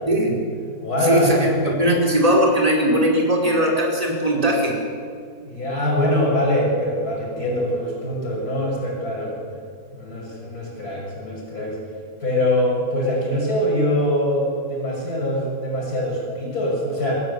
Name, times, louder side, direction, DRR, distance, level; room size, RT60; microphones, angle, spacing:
voice 1, 0.1-0.5 1.0-4.8, equal, 20° right, -2 dB, 4.9 m, -19 dB
voice 2, 0.8-1.4 5.4-9.4 9.9-11.8 12.2-17.1, left 1 dB, 65° left, -2 dB, 7.2 m, -23 dB
26.0 x 17.0 x 8.3 m, 2.1 s
omnidirectional pair, 1.7 m